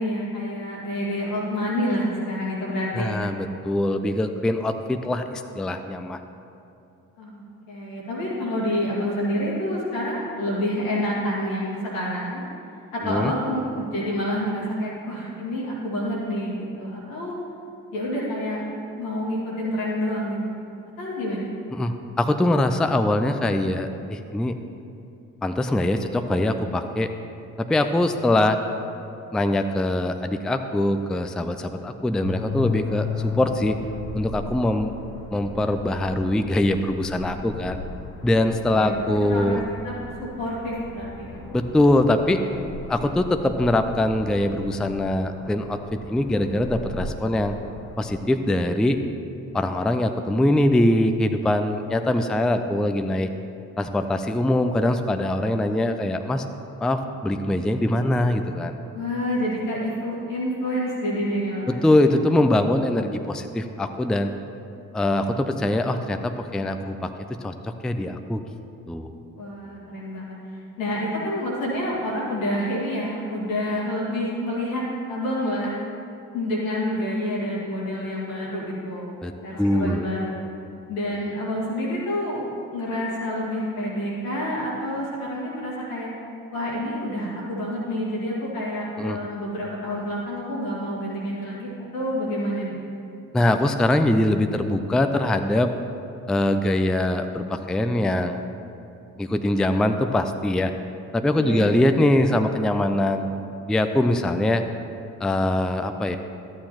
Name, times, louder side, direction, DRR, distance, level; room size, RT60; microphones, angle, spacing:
voice 1, 0.0-3.2 7.2-12.5 12.9-17.3 17.9-18.6 19.0-20.6 21.0-21.5 38.7-41.5 42.8-43.1 58.9-62.0 69.4-74.8 75.1-75.8 76.3-79.2 79.4-80.3 80.9-82.4 82.7-86.1 86.5-92.8 101.4-101.7, equal, 80° left, -6 dB, 2.1 m, -28 dB
voice 2, 2.9-6.2 13.1-13.3 21.7-24.5 25.4-27.1 27.6-28.6 29.3-33.8 34.1-34.9 35.3-37.8 38.2-39.6 41.5-42.4 42.9-47.6 48.0-49.0 49.5-53.3 53.8-56.4 56.8-58.7 61.7-64.3 64.9-67.1 67.4-68.4 68.9-69.2 79.2-79.3 79.6-80.0 89.0-89.2 93.3-95.7 96.3-98.4 99.2-100.7 101.1-103.3 103.7-104.6 105.2-106.2, left 1 dB, ahead, 7 dB, 0.4 m, -22 dB
sound 1, 32.2-48.2, left 4 dB, 65° left, 1.1 m, -36 dB
12.5 x 8.6 x 3.0 m, 2.7 s
figure-of-eight pair, 40°, 40 cm